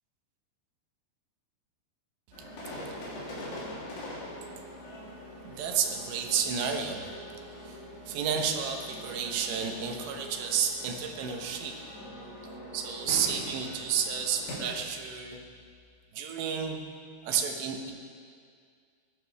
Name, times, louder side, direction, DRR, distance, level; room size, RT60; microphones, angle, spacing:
sound 1, 2.3-14.6, equal, 85° left, 5.4 m, -43 dB
voice 1, 5.4-7.2 7.5-11.8 12.7-15.4 16.1-16.8 17.2-17.9, right 7 dB, 90° right, 3 dB, 3.3 m, -31 dB
19.0 x 14.0 x 3.5 m, 2.1 s
omnidirectional pair, 4.8 m